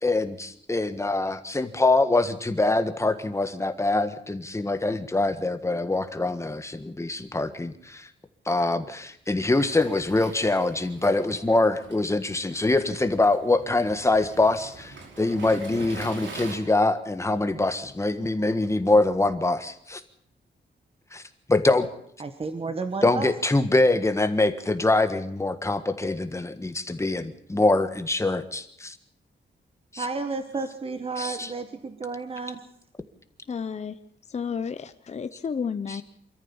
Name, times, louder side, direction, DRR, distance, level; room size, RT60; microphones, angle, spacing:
voice 1, 0.0-8.1 8.4-20.0 21.1-21.2 21.5-21.9 23.0-29.0 29.9-30.1 31.2-31.5, left 2 dB, 15° left, 9 dB, 1.6 m, -24 dB
Waves surf, 9.5-16.6, right 3 dB, 85° right, 5.2 m, -43 dB
voice 2, 22.2-23.3 30.0-32.6, right 4 dB, 30° right, 8 dB, 1.4 m, -32 dB
voice 3, 33.5-34.0 34.3-36.0, left 6 dB, 35° left, 11 dB, 0.8 m, -31 dB
26.0 x 14.0 x 7.2 m, 0.69 s
wide cardioid pair, 145°, 19 cm